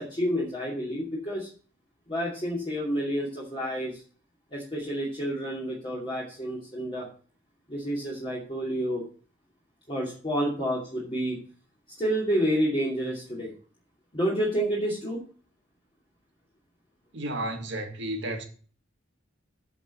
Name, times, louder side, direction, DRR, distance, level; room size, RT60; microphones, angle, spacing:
voice 1, 0.0-1.5 2.1-4.0 4.5-7.1 7.7-9.0 9.9-11.4 12.0-13.5 14.1-15.2, equal, 30° left, 2.6 m, -29 dB
voice 2, 17.1-18.4, right 1 dB, 65° right, 1.9 m, -32 dB
8.9 x 5.2 x 7.4 m
head